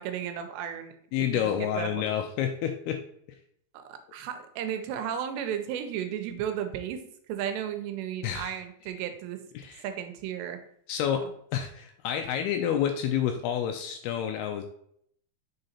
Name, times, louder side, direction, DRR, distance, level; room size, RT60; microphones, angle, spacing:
voice 1, 0.0-0.9 1.3-2.0 3.7-7.0 7.3-9.4 9.8-10.6 11.2-11.3, right 9 dB, 85° right, 8 dB, 2.9 m, -34 dB
voice 2, 1.1-3.0 8.2-8.6 9.6-9.8 10.9-11.3 11.5-14.6, left 9 dB, 85° left, 5 dB, 2.3 m, -29 dB
6.5 x 3.9 x 4.1 m, 0.67 s
omnidirectional pair, 4.9 m